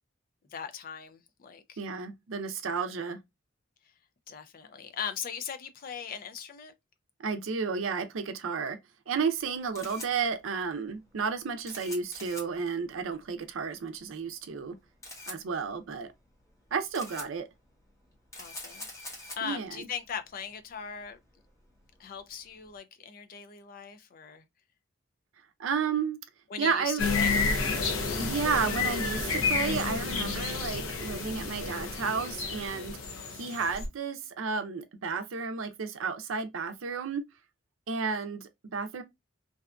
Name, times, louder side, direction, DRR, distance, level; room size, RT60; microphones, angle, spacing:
voice 1, 0.5-1.8 4.3-6.7 18.4-18.9 19.3-21.2 22.0-24.4 26.5-27.4, left 7 dB, 45° left, 0.3 m, -39 dB
voice 2, 1.8-3.2 7.2-8.8 9.1-14.8 15.3-16.1 16.7-17.4 19.4-19.9 25.6-26.2 26.6-27.0 28.2-33.0 33.3-37.2 37.9-39.0, right 5 dB, 80° right, 0.5 m, -32 dB
Camera, 9.4-22.7, left 1 dB, 15° left, 0.9 m, -47 dB
sound 1, 27.0-33.9, left 4 dB, 90° left, 0.6 m, -30 dB
2.6 x 2.4 x 2.2 m
head